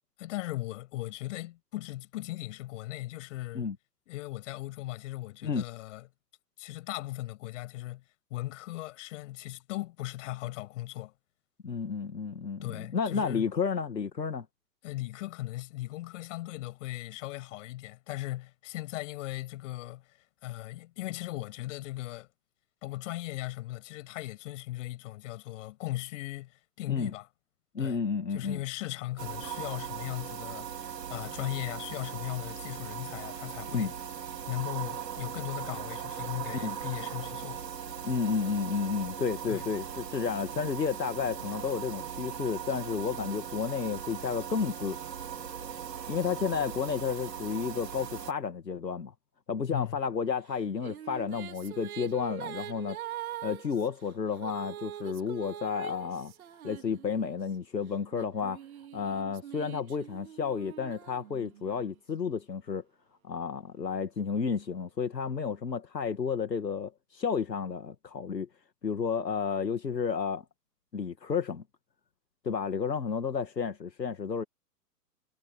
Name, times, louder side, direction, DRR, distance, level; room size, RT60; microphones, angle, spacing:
voice 1, 0.2-3.7 4.1-6.1 6.6-8.0 8.3-11.1 12.6-13.5 14.8-20.0 20.4-22.3 22.8-27.3 27.8-28.0 28.3-30.7 31.1-33.9 34.5-37.6 39.5-39.7 49.7-50.0, left 17 dB, 50° left, 7.4 m, -38 dB
voice 2, 11.6-14.5 26.9-27.1 27.7-28.6 33.7-33.9 36.6-36.8 38.0-45.0 46.1-49.1 49.5-53.0 53.4-56.3 56.6-58.6 58.9-62.8 63.2-68.5 68.8-70.4 70.9-71.6 72.4-74.4, left 6 dB, 85° left, 2.2 m, -31 dB
sound 1, 29.2-48.3, right 8 dB, 75° right, 2.7 m, -39 dB
Female singing, 50.5-57.4 58.1-61.9, right 12 dB, 60° right, 3.7 m, -43 dB
figure-of-eight pair, 110°, 49 cm